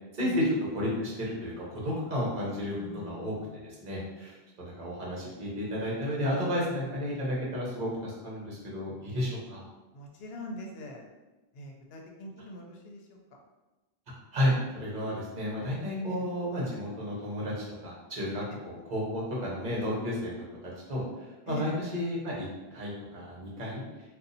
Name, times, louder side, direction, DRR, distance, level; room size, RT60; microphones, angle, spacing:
voice 1, 0.1-0.4 0.7-2.7 3.0-3.3 3.6-9.6 14.3-22.5 22.7-23.8, left 1 dB, 50° right, -4 dB, 1.1 m, -32 dB
voice 2, 2.7-3.6 9.9-11.0 11.5-13.2 16.1-16.3 18.5-18.6 21.5-21.7, left 1 dB, 75° left, 0 dB, 0.8 m, -42 dB
2.6 x 2.4 x 3.9 m, 1.1 s
omnidirectional pair, 1.1 m